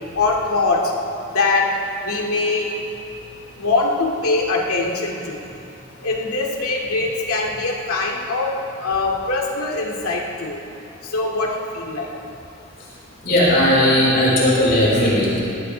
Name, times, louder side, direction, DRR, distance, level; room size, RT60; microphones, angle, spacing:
voice 1, 0.1-0.8 1.3-1.7 2.0-2.7 3.6-5.4 6.0-8.5 8.8-10.6 11.1-12.1, left 3 dB, 85° left, -1 dB, 2.2 m, -22 dB
voice 2, 13.2-15.4, left 1 dB, 45° left, -7 dB, 4.5 m, -16 dB
20.0 x 17.0 x 3.4 m, 2.7 s
head